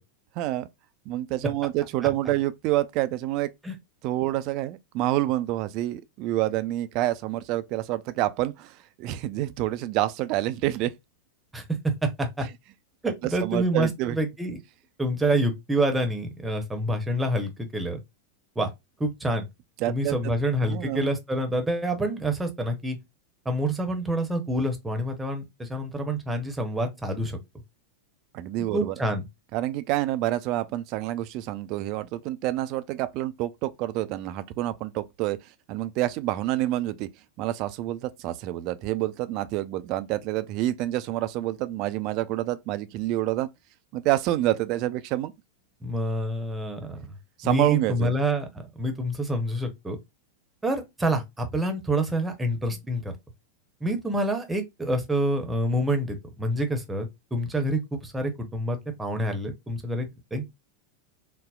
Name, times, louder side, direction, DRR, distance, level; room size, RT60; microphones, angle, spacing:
voice 1, 0.4-0.7 1.1-3.5 4.0-10.9 13.4-14.2 19.8-20.1 20.6-21.1 28.3-29.0 29.5-37.1 37.4-43.5 43.9-45.3 47.4-48.2, right 15 dB, 40° right, 0.3 m, -28 dB
voice 2, 11.5-12.5 13.0-14.6 15.0-18.0 18.6-18.7 19.0-19.5 19.9-23.0 23.4-27.4 28.7-29.2 45.8-47.1 47.4-48.5 48.8-50.0 50.6-53.1 53.8-60.4, right 1 dB, 10° right, 0.8 m, -27 dB
4.0 x 2.0 x 2.3 m
figure-of-eight pair, 90°, 0 cm